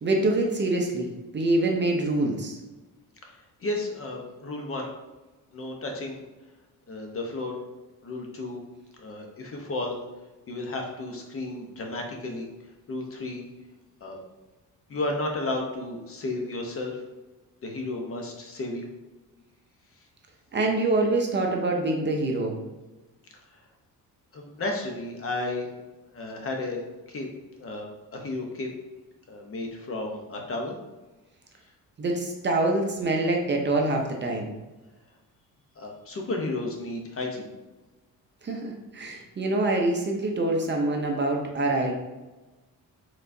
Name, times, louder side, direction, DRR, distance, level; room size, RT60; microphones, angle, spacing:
voice 1, 0.0-2.6 20.5-22.6 32.0-34.5 38.4-41.9, right 2 dB, 30° right, 1 dB, 0.6 m, -25 dB
voice 2, 3.6-4.9 5.5-6.2 6.9-7.6 8.0-8.6 9.0-10.0 10.5-12.5 12.9-13.5 14.0-14.2 14.9-17.0 17.6-18.9 24.3-25.7 26.1-26.8 27.1-27.3 27.6-28.7 29.3-30.8 35.8-37.5, left 2 dB, 40° left, 2 dB, 0.8 m, -33 dB
4.7 x 3.8 x 2.6 m, 1.1 s
cardioid pair, 130°, 36 cm